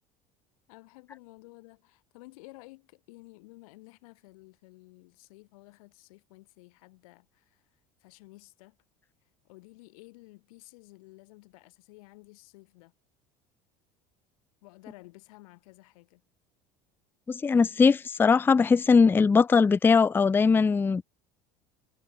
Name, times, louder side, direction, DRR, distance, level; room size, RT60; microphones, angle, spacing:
voice 1, 0.7-7.6 8.0-8.8 9.4-12.9 14.6-16.2, left 23 dB, 90° left, 7.1 m, -53 dB
voice 2, 17.3-21.0, left 5 dB, 10° left, 0.3 m, -20 dB
supercardioid pair, 110°, 18 cm